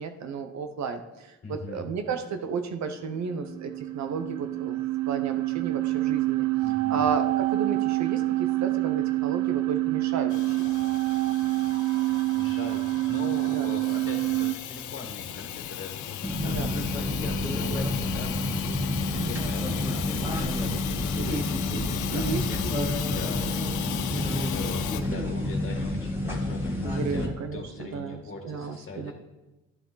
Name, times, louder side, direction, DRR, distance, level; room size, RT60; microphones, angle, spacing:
voice 1, 0.0-6.5 6.9-10.6 13.5-13.7 16.4-16.8 19.1-19.6 21.1-22.9 24.1-24.5 26.8-29.1, right 5 dB, 65° right, 7 dB, 1.0 m, -33 dB
voice 2, 1.4-1.9 6.6-7.0 12.4-29.1, left 3 dB, 40° left, 1 dB, 1.9 m, -41 dB
sound 1, 3.3-14.5, right 18 dB, 85° right, 0.6 m, -27 dB
Hiss / Toilet flush / Trickle dribble, 10.3-25.0, left 10 dB, 75° left, 0.7 m, -36 dB
sound 2, 16.2-27.3, left 1 dB, 10° right, 2.1 m, -29 dB
10.5 x 10.0 x 4.0 m, 1.1 s
cardioid pair, 90°, 30 cm